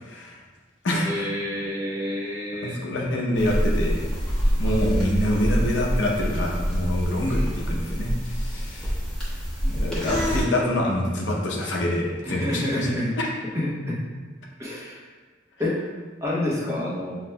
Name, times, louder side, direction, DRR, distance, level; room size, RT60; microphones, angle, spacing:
voice 1, 0.0-0.4 0.8-1.2 2.6-4.0 4.5-8.9 9.6-13.0, left 1 dB, 75° left, -2 dB, 0.7 m, -26 dB
voice 2, 0.9-2.8 7.2-7.5 12.2-13.2 13.5-14.0 14.6-15.1 15.6-15.8 16.2-17.2, left 1 dB, 15° right, -6 dB, 0.8 m, -28 dB
sound 1, 3.4-10.4, equal, 5° left, 1.1 m, -26 dB
5.9 x 3.1 x 2.2 m, 1.4 s
head